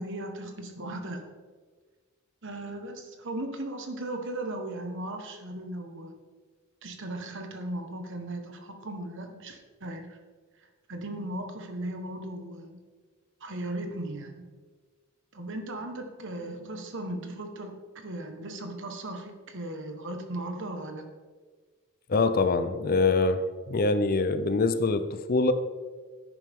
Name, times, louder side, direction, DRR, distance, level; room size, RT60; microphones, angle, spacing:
voice 1, 0.0-1.3 2.4-6.1 6.8-10.2 10.9-12.8 13.4-14.5 15.3-21.0, right 1 dB, 55° right, 5 dB, 1.4 m, -37 dB
voice 2, 22.1-23.4 23.7-25.5, left 3 dB, 40° left, 11 dB, 0.6 m, -24 dB
11.0 x 9.3 x 3.7 m, 1.4 s
head